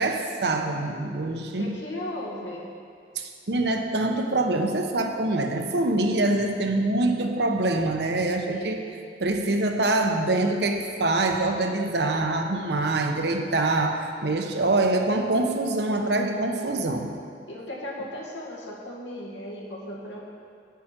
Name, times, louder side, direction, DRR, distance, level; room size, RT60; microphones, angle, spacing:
voice 1, 0.0-1.7 3.2-8.8 9.2-17.1, right 2 dB, 65° right, 4 dB, 0.9 m, -25 dB
voice 2, 1.6-2.7 8.5-9.0 17.5-20.2, left 1 dB, 85° left, -3 dB, 2.0 m, -36 dB
9.1 x 8.4 x 6.1 m, 2.3 s
head